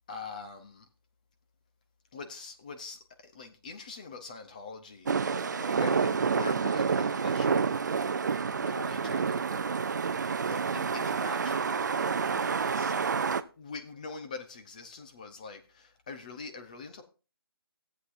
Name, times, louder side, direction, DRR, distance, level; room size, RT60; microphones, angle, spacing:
voice 1, 0.1-0.9 2.1-7.8 8.4-13.1 13.6-17.0, left 4 dB, 20° left, 0.6 m, -44 dB
sound 1, 5.1-13.4, right 5 dB, 45° right, 0.4 m, -29 dB
14.5 x 8.1 x 2.5 m
hypercardioid pair, 175°, 13 cm